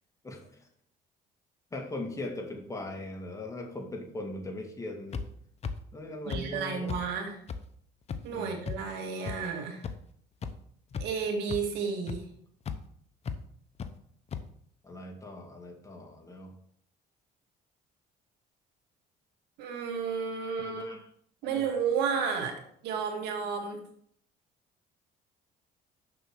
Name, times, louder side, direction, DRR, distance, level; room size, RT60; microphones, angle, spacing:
voice 1, 0.2-0.7 1.7-5.2 5.9-7.0 8.3-8.5 14.8-16.5 20.6-21.0 21.4-21.6, left 2 dB, 20° left, 2 dB, 2.0 m, -40 dB
sound 1, 5.1-5.2 5.6-5.7 6.3-6.4 6.9-7.0 7.5-7.6 8.1-8.2 8.7-8.8 9.3-9.4 9.8-9.9 10.4-10.5 10.9-11.2 11.5-11.6 12.1-12.2 12.7-12.8 13.2-13.4 13.8-13.9 14.3-14.4, left 6 dB, 40° left, 0.8 m, -34 dB
voice 2, 6.3-7.4 8.2-9.9 10.9-12.2 19.6-20.9 21.4-23.8, right 6 dB, 90° right, 3 dB, 2.1 m, -32 dB
6.8 x 5.9 x 6.2 m, 0.65 s
cardioid pair, 110°, 17 cm